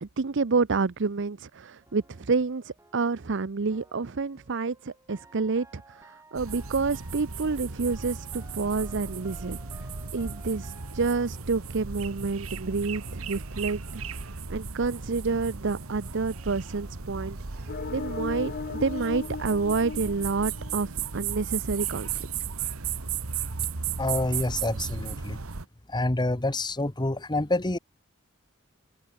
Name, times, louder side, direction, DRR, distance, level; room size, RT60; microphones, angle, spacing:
voice 1, 0.0-22.3, right 4 dB, 60° right, 0.7 m, -29 dB
sound 1, 1.8-14.5 14.8-19.6, right 2 dB, 15° right, 6.6 m, -56 dB
sound 2, 6.4-25.7, right 6 dB, 85° right, 1.5 m, -35 dB
sound 3, 17.7-21.3, left 5 dB, 45° left, 0.5 m, -37 dB
voice 2, 24.0-25.4 25.9-27.8, left 2 dB, 20° left, 1.2 m, -27 dB
head